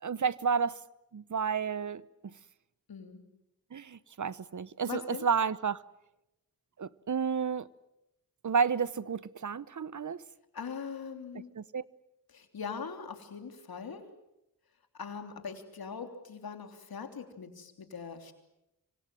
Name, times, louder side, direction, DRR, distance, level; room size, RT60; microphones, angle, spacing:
voice 1, 0.0-0.8 1.1-2.3 3.7-5.8 6.8-7.7 8.4-10.2 11.6-11.8, right 6 dB, 55° right, 0.9 m, -31 dB
voice 2, 2.9-3.2 4.9-5.3 10.5-11.5 12.3-14.0 14.9-18.3, left 6 dB, 85° left, 3.3 m, -41 dB
26.0 x 25.5 x 7.6 m
cardioid pair, 50°, 35 cm